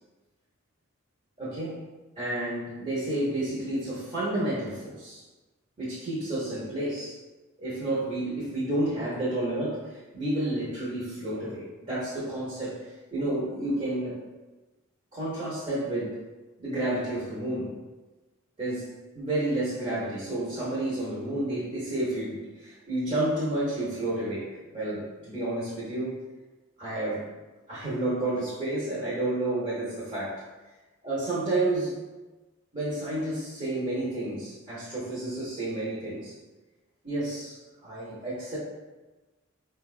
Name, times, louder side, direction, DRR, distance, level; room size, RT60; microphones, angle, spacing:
voice 1, 1.4-1.8 2.2-5.2 5.8-7.2 7.6-14.2 15.1-16.2 16.6-17.7 18.6-26.2 26.8-27.3 27.7-30.4 31.0-32.0 32.7-36.4 37.0-37.6 37.8-38.6, right 1 dB, 35° right, -10 dB, 0.8 m, -30 dB
4.4 x 2.2 x 2.4 m, 1.2 s
head